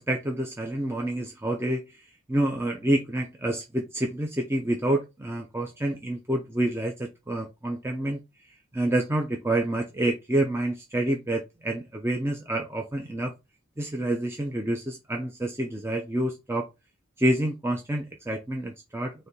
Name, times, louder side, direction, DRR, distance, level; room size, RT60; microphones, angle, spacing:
voice 1, 0.0-8.2 8.7-13.3 13.8-16.7 17.2-19.3, right 1 dB, 10° right, 0.5 m, -28 dB
4.2 x 3.2 x 3.8 m
head